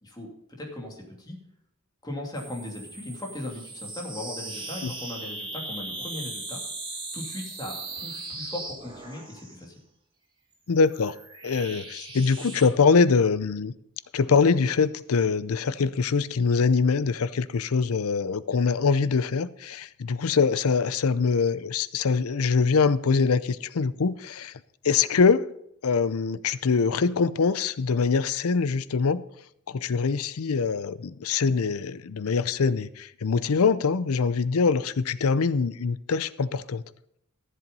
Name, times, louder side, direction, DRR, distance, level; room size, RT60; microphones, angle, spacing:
voice 1, 0.0-1.4 2.0-6.6 7.1-9.7, left 1 dB, 20° left, 2.8 m, -38 dB
sound 1, 2.3-9.6 10.5-12.7, right 2 dB, 25° right, 2.2 m, -38 dB
voice 2, 10.7-11.2 11.4-13.7 14.1-24.5 24.8-25.5 25.8-29.2 29.7-36.8, left 5 dB, 85° left, 0.6 m, -23 dB
14.0 x 7.7 x 5.4 m
head